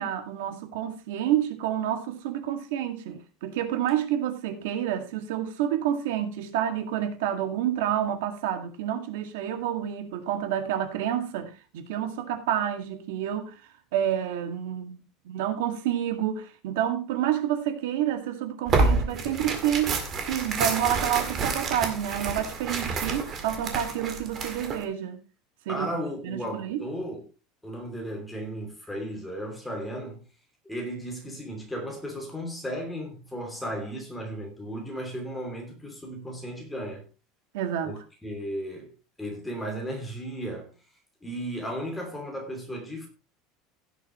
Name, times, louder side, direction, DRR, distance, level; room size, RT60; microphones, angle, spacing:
voice 1, 0.0-13.6 13.9-15.0 15.3-25.2 25.7-25.9 26.2-26.8 37.5-37.9, right 10 dB, 85° right, 2.1 m, -29 dB
Tearing, 18.7-24.8, right 4 dB, 25° right, 1.9 m, -28 dB
voice 2, 25.7-27.3 27.6-30.2 30.6-37.0 37.8-40.7 41.2-43.1, equal, 5° left, 2.9 m, -35 dB
16.5 x 8.2 x 3.1 m
cardioid pair, 180°, 0 cm